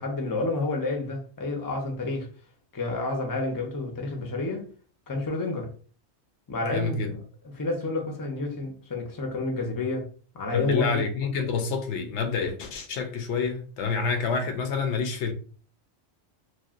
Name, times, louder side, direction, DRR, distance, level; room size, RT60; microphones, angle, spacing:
voice 1, 0.0-2.3 2.7-4.7 5.1-5.7 6.5-7.2 7.5-10.1 10.3-11.0, left 2 dB, 25° left, 0.5 m, -29 dB
voice 2, 6.6-7.1 10.5-15.3, left 5 dB, 85° left, 0.9 m, -28 dB
3.1 x 2.4 x 2.4 m
omnidirectional pair, 1.2 m